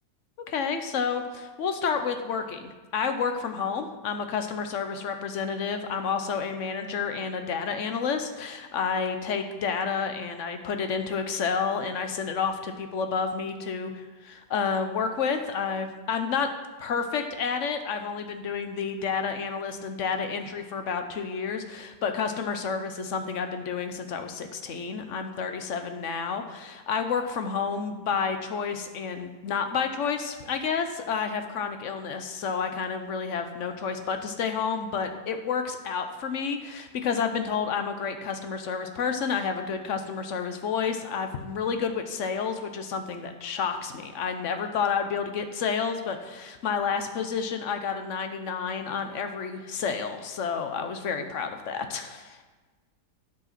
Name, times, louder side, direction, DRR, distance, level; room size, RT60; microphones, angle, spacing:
voice 1, 0.5-16.5 16.8-52.4, left 6 dB, 55° left, 7 dB, 1.1 m, -30 dB
11.5 x 5.3 x 5.9 m, 1.3 s
omnidirectional pair, 1.8 m